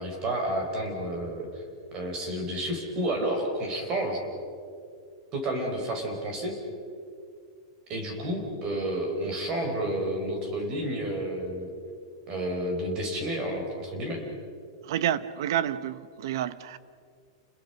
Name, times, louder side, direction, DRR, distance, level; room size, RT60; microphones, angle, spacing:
voice 1, 0.0-1.6 1.9-4.2 5.3-6.5 7.9-11.7 12.3-14.2, right 1 dB, 25° right, 3 dB, 4.9 m, -30 dB
voice 2, 14.9-16.8, right 10 dB, 60° right, 15 dB, 1.0 m, -29 dB
29.5 x 21.0 x 5.9 m, 2.3 s
supercardioid pair, 165°, 2 cm